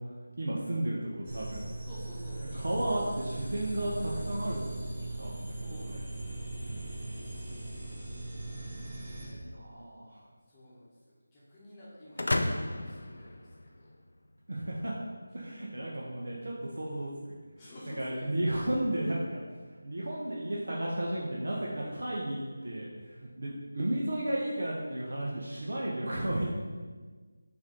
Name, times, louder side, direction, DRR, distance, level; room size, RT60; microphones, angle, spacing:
voice 1, 0.4-1.8 2.5-4.9 5.2-5.5 5.9-6.0 6.6-6.8 9.4-10.2 14.5-14.9 15.3-17.1 18.0-19.4 19.8-26.5, right 1 dB, 70° right, -4 dB, 0.7 m, -33 dB
sound 1, 1.2-9.3, right 2 dB, 20° right, 1.0 m, -39 dB
voice 2, 1.8-3.2 5.4-6.5 9.2-9.4 10.5-13.9 15.4-15.6 17.6-18.5 21.5-21.9 25.5-25.7, left 1 dB, 15° left, -10 dB, 0.9 m, -51 dB
sound 2, 12.2-14.1, left 1 dB, 60° left, 0.4 m, -32 dB
4.8 x 2.7 x 3.7 m, 1.4 s
figure-of-eight pair, 165°, 0 cm